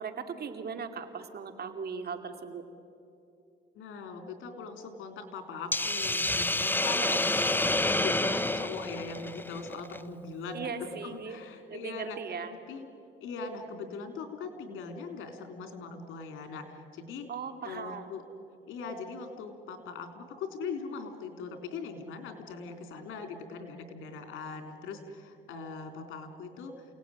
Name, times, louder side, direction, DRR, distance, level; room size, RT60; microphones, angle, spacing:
voice 1, 0.0-2.6 6.9-7.5 10.5-11.4 11.7-12.5 17.3-18.2, right 6 dB, 55° right, 7 dB, 2.7 m, -39 dB
voice 2, 3.8-7.0 7.5-12.2 12.7-12.9 13.2-17.3 17.6-18.2 18.7-26.9, left 4 dB, 85° left, 6 dB, 3.5 m, -40 dB
Hiss, 5.7-10.0, left 2 dB, 10° left, 0.9 m, -28 dB
28.5 x 18.5 x 9.8 m, 2.7 s
cardioid pair, 90°, 20 cm